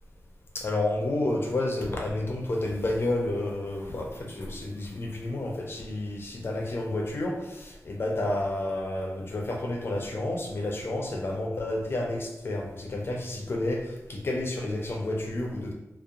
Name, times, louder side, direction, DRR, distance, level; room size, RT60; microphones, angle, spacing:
voice 1, 0.5-15.7, left 2 dB, 45° left, 0 dB, 0.5 m, -30 dB
2.4 x 2.0 x 2.8 m, 0.93 s
wide cardioid pair, 130°, 5 cm